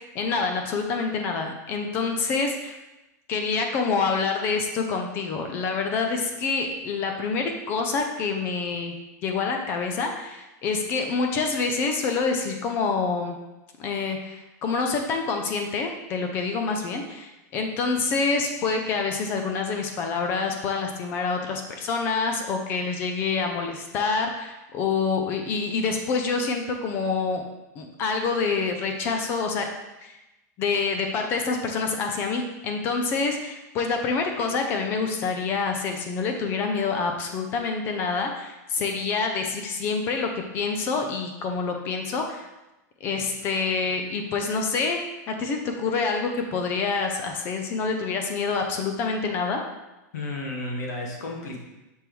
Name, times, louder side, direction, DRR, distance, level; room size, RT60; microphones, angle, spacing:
voice 1, 0.1-2.8 3.3-8.9 9.2-13.4 13.8-27.4 27.8-29.7 30.0-30.2 30.6-42.5 43.0-49.6, left 4 dB, 20° left, 4 dB, 0.5 m, -27 dB
voice 2, 50.1-51.6, left 2 dB, 70° left, 0 dB, 1.4 m, -32 dB
6.0 x 3.5 x 4.6 m, 0.99 s
supercardioid pair, 180°, 10 cm